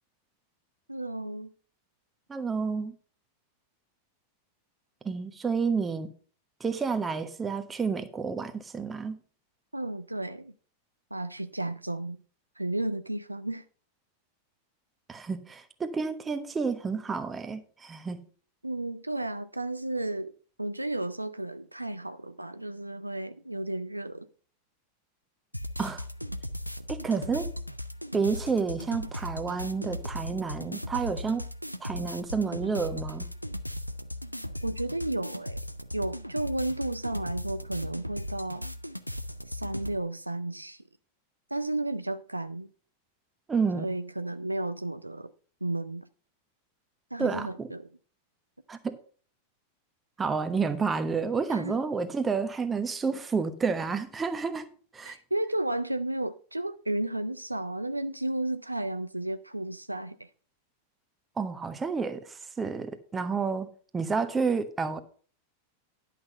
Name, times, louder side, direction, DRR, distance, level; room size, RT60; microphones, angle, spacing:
voice 1, 0.9-1.5 9.7-10.5 11.1-12.2 12.6-13.6 18.6-20.3 20.6-24.3 34.6-35.6 35.9-38.7 39.5-40.8 41.5-42.7 43.7-45.3 45.6-46.0 47.1-47.9 51.5-51.8 55.0-60.3, right 1 dB, 85° right, 0.4 m, -33 dB
voice 2, 2.3-2.9 5.0-6.1 6.6-9.2 15.1-18.2 25.8-26.0 26.9-27.5 28.1-31.5 31.8-33.3 43.5-43.9 47.2-47.7 48.7-49.0 50.2-54.6 54.9-55.2 61.4-63.7 63.9-65.0, right 5 dB, 15° right, 1.1 m, -30 dB
sound 1, 25.5-40.0, equal, 90° left, 0.5 m, -37 dB
10.5 x 6.0 x 5.5 m
figure-of-eight pair, 90°, 0 cm